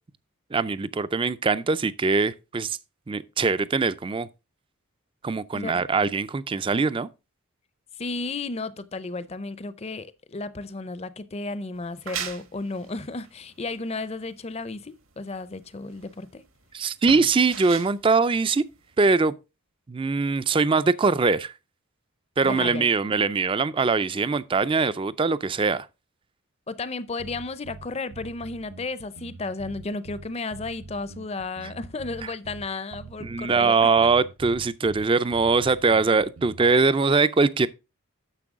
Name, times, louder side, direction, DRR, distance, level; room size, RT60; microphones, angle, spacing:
voice 1, 0.5-2.8 3.1-4.3 5.2-7.1 16.7-18.6 19.0-19.3 19.9-21.5 22.4-25.9 33.2-37.7, right 4 dB, 25° right, 0.3 m, -22 dB
voice 2, 8.0-16.4 22.4-22.9 26.7-33.9, left 3 dB, 30° left, 0.5 m, -33 dB
sound 1, 11.7-19.2, right 8 dB, 65° right, 1.2 m, -40 dB
sound 2, 27.2-36.8, right 3 dB, 85° right, 0.7 m, -45 dB
9.9 x 6.8 x 3.6 m
head